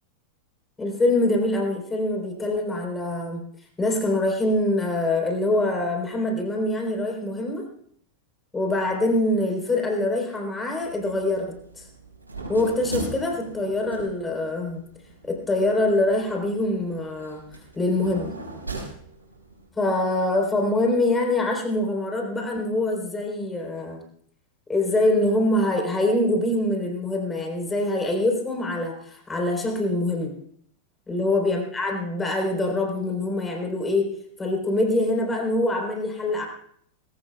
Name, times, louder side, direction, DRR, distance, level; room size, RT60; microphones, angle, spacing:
voice 1, 0.8-3.4 3.8-7.7 8.5-11.9 12.5-14.8 15.2-17.4 17.8-18.3 19.8-24.0 24.7-30.3 31.1-36.5, left 2 dB, 15° left, 2 dB, 3.9 m, -24 dB
sound 1, 10.8-19.7, right 2 dB, 80° right, 5.8 m, -39 dB
21.5 x 18.5 x 2.3 m, 0.64 s
figure-of-eight pair, 90°, 0 cm